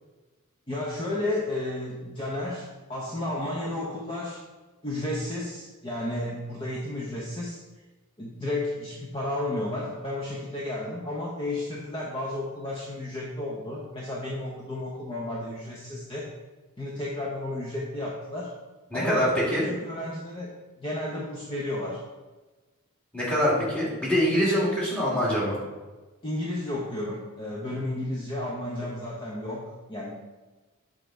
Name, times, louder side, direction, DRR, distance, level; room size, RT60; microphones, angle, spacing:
voice 1, 0.7-4.4 4.8-7.6 8.2-16.3 16.8-18.5 18.9-20.5 20.8-22.0 26.2-30.1, left 1 dB, 25° left, -5 dB, 0.8 m, -32 dB
voice 2, 18.9-19.6 23.1-25.6, equal, 5° left, -6 dB, 2.0 m, -24 dB
7.4 x 3.7 x 4.5 m, 1.2 s
head